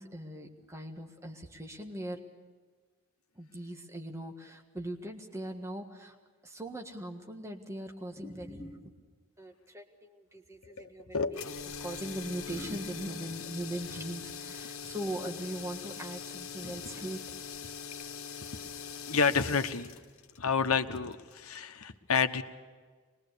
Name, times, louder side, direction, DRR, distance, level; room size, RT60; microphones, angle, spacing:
voice 1, 0.0-2.2 3.4-6.1 6.4-8.9 9.4-11.4 11.8-17.2, right 1 dB, 15° right, 2 dB, 1.7 m, -40 dB
sound 1, 11.3-21.4, left 6 dB, 70° left, 1.4 m, -43 dB
voice 2, 19.1-19.9 20.4-22.4, left 5 dB, 90° left, 8 dB, 1.1 m, -29 dB
24.5 x 21.0 x 6.8 m, 1.5 s
head